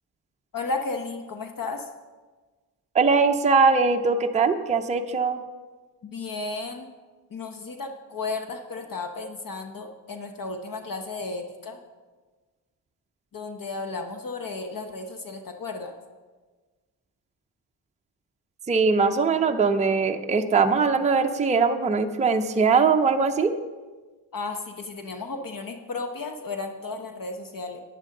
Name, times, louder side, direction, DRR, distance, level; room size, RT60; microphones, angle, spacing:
voice 1, 0.5-1.9 6.0-6.9 7.3-11.8 13.3-15.9 24.3-27.8, left 3 dB, 45° left, 5 dB, 1.0 m, -34 dB
voice 2, 2.9-5.4 18.7-23.5, right 4 dB, 15° right, 5 dB, 0.5 m, -21 dB
12.0 x 9.2 x 3.8 m, 1.3 s
cardioid pair, 95°, 48 cm